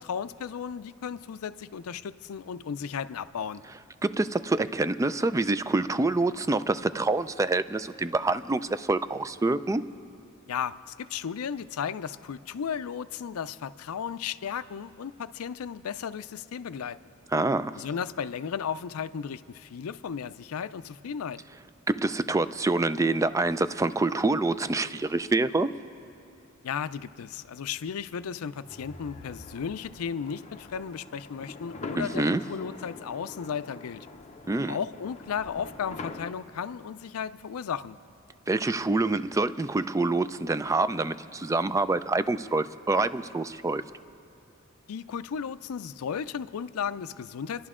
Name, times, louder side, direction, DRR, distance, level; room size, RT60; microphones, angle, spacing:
voice 1, 0.0-3.6 10.5-17.0 17.8-21.4 26.6-34.1 34.7-38.0 44.9-47.7, left 7 dB, 80° left, 14 dB, 0.4 m, -35 dB
voice 2, 4.0-9.8 17.3-17.7 21.9-25.7 32.0-32.4 34.5-34.8 38.5-43.8, right 2 dB, 15° right, 14 dB, 0.3 m, -26 dB
sound 1, 28.4-30.4, left 2 dB, 45° right, 2.0 m, -50 dB
sound 2, 28.7-36.3, left 3 dB, 30° left, 0.6 m, -44 dB
29.0 x 11.0 x 3.7 m, 2.7 s
head